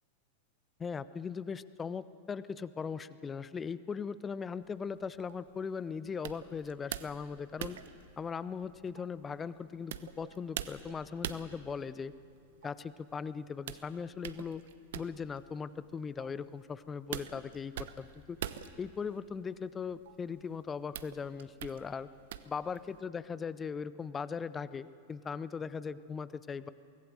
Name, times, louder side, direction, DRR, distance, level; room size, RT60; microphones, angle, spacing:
voice 1, 0.8-7.8 8.2-12.1 12.6-14.6 14.9-18.4 18.8-22.1 22.4-26.7, left 6 dB, 20° left, 16 dB, 0.6 m, -39 dB
sound 1, 4.6-23.1, right 10 dB, 55° right, 0.9 m, -46 dB
24.0 x 18.5 x 7.7 m, 2.4 s
figure-of-eight pair, 90°, 0 cm